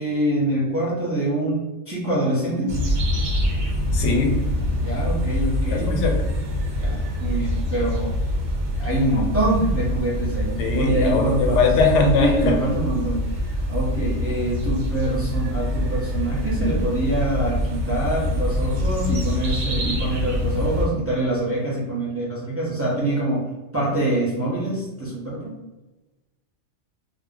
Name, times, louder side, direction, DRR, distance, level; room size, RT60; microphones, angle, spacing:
voice 1, 0.0-2.8 4.8-6.0 6.8-8.1 8.8-11.7 12.2-23.5 23.7-25.6, right 1 dB, 15° right, -6 dB, 0.6 m, -25 dB
sound 1, 2.7-20.9, left 1 dB, 85° right, 0.9 m, -25 dB
voice 2, 3.9-4.3 5.7-6.2 10.6-12.6, left 4 dB, 85° left, 2 dB, 0.9 m, -20 dB
2.4 x 2.1 x 3.6 m, 1.1 s
omnidirectional pair, 1.2 m